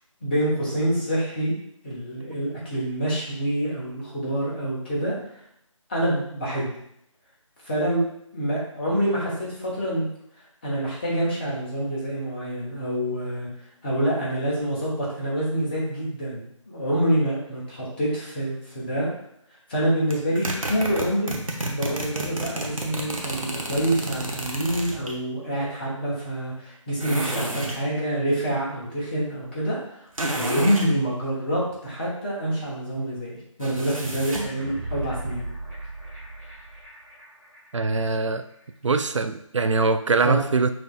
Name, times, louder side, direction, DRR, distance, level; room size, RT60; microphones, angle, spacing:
voice 1, 0.2-1.5 1.8-5.4 5.9-6.7 7.6-8.0 8.3-10.1 10.6-13.5 13.8-19.1 19.7-21.3 21.7-30.0 30.3-33.3 33.6-35.5 40.2-40.4, right 1 dB, 20° left, -6 dB, 1.1 m, -26 dB
sound 1, 20.1-25.2 27.0-27.8 30.2-30.9 33.6-34.6, right 1 dB, 85° right, 1.0 m, -30 dB
sound 2, 34.3-37.2 37.5-37.6, right 1 dB, 5° right, 0.4 m, -35 dB
voice 2, 37.7-38.4 38.8-40.7, right 4 dB, 65° right, 9 dB, 0.4 m, -22 dB
5.9 x 3.2 x 2.4 m, 0.72 s
figure-of-eight pair, 160°, 17 cm